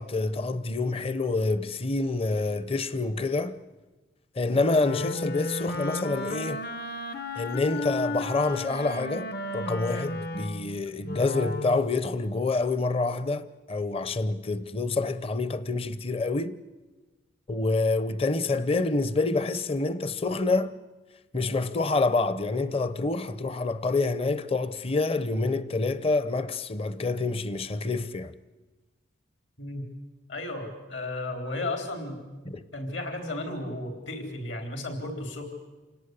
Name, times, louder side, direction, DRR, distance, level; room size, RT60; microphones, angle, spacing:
voice 1, 0.0-3.6 4.4-6.6 7.4-16.6 17.5-20.7 21.3-28.3 32.5-32.6, left 3 dB, 30° left, 0.8 m, -27 dB
Wind instrument woodwind instrument, 4.5-11.9, left 2 dB, 55° left, 1.1 m, -34 dB
voice 2, 29.6-29.9 30.3-32.3 32.7-35.4, left 2 dB, 70° left, 4.1 m, -34 dB
27.5 x 18.0 x 9.6 m
head